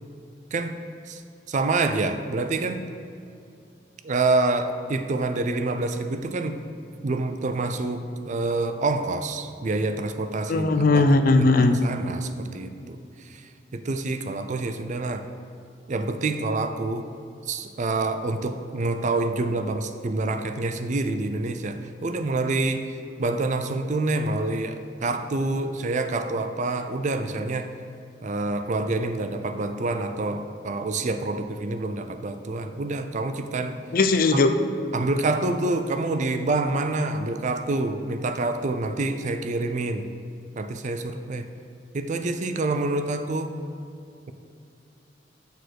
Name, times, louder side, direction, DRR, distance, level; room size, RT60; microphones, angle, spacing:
voice 1, 1.5-2.8 4.0-6.6 7.0-11.0 11.4-15.2 15.9-17.1 17.5-27.7 28.2-33.8 34.3-34.4 34.9-40.1 40.6-41.5 41.9-43.5, right 2 dB, 45° right, 9 dB, 0.4 m, -27 dB
voice 2, 10.5-11.8 33.9-34.5, left 3 dB, 55° left, 8 dB, 0.5 m, -18 dB
6.7 x 6.6 x 4.6 m, 2.5 s
head